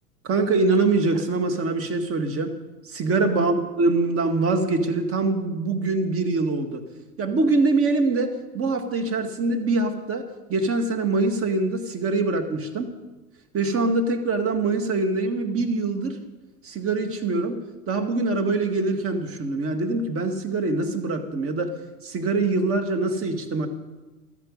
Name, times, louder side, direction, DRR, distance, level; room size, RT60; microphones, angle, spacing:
voice 1, 0.2-2.5 2.9-6.8 7.2-13.0 13.5-16.2 16.6-21.7 22.0-23.7, right 3 dB, 30° right, 6 dB, 2.0 m, -24 dB
14.5 x 13.5 x 5.4 m, 1.1 s
hypercardioid pair, 95°, 46 cm